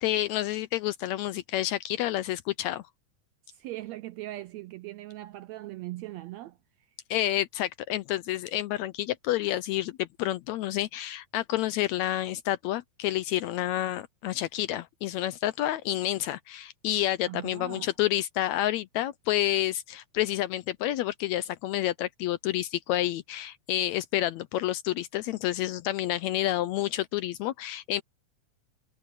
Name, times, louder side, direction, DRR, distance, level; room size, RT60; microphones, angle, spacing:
voice 1, 0.0-2.8 7.1-28.0, left 14 dB, 80° left, 1.7 m, -29 dB
voice 2, 3.5-6.6 17.3-17.9, right 17 dB, 80° right, 1.6 m, -40 dB
omnidirectional pair, 3.6 m